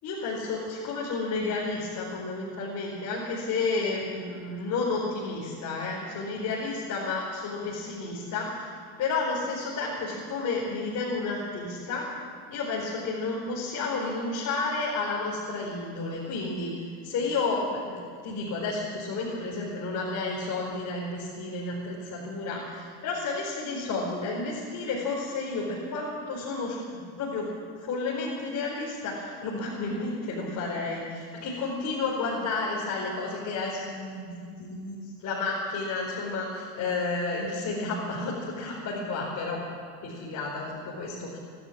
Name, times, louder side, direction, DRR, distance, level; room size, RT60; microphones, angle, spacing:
voice 1, 0.0-8.7 9.0-12.1 12.5-16.7 17.0-27.5 27.8-39.6 40.0-41.4, left 3 dB, 40° left, -4 dB, 4.7 m, -31 dB
27.5 x 12.0 x 8.7 m, 2.2 s
supercardioid pair, 135°, 45 cm